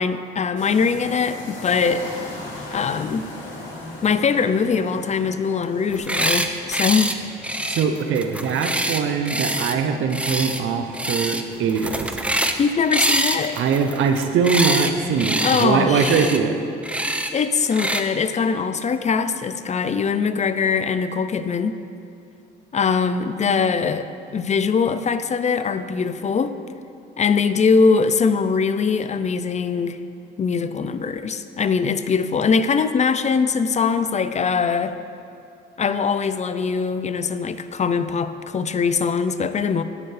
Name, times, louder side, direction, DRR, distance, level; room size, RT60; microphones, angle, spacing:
voice 1, 0.0-2.2 2.7-3.2 4.0-7.2 12.6-13.6 15.4-16.3 17.0-21.8 22.7-24.1 24.3-26.6 27.2-30.0 30.4-35.0 35.8-39.8, left 5 dB, 35° left, 12 dB, 0.5 m, -22 dB
sound 1, 0.6-16.7, left 1 dB, 70° left, 2.7 m, -41 dB
Angry bird screaming, 5.9-6.5 6.7-7.1 7.4-9.7 10.1-10.6 10.9-11.4 11.7-12.6 12.9-14.9 15.2-15.7 15.9-16.4 16.8-17.3 17.7-18.0, right 1 dB, 5° right, 0.6 m, -24 dB
voice 2, 7.7-12.1 13.6-16.6, right 6 dB, 80° right, 6 dB, 0.8 m, -22 dB
17.0 x 7.0 x 3.3 m, 2.6 s
cardioid pair, 90°, 20 cm